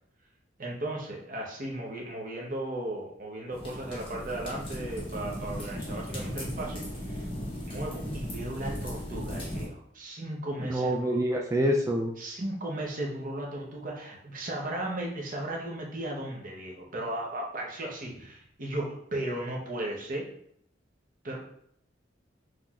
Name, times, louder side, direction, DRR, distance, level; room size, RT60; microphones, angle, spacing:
voice 1, 0.6-7.3 7.6-11.2 12.2-20.3 21.2-21.4, right 1 dB, 45° right, -2 dB, 0.9 m, -36 dB
sound 1, 3.5-9.7, equal, 30° left, 1.4 m, -37 dB
voice 2, 10.6-12.1, equal, 15° right, 0 dB, 0.4 m, -26 dB
5.7 x 3.3 x 2.4 m, 0.68 s
head